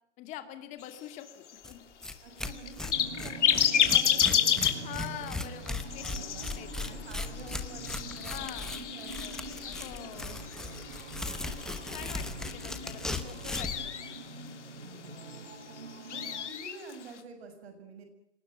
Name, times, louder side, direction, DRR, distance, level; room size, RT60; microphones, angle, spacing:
voice 1, 0.2-1.8 4.8-6.0 6.5-7.0 8.3-8.8 9.8-10.4 11.5-14.0, left 12 dB, 20° left, 8 dB, 2.3 m, -44 dB
sound 1, 0.8-17.2, left 9 dB, 85° left, 3.3 m, -33 dB
Tearing, 1.6-1.7 2.0-2.1 2.4-13.8, left 2 dB, ahead, 0.9 m, -38 dB
voice 2, 2.2-4.9 6.0-10.7 11.8-12.4 14.7-15.5 16.0-18.0, right 3 dB, 65° right, 7 dB, 7.1 m, -49 dB
sound 2, 2.9-16.5, right 3 dB, 80° right, 5.0 m, -45 dB
27.0 x 19.0 x 9.3 m, 0.80 s
hypercardioid pair, 170°, 35 cm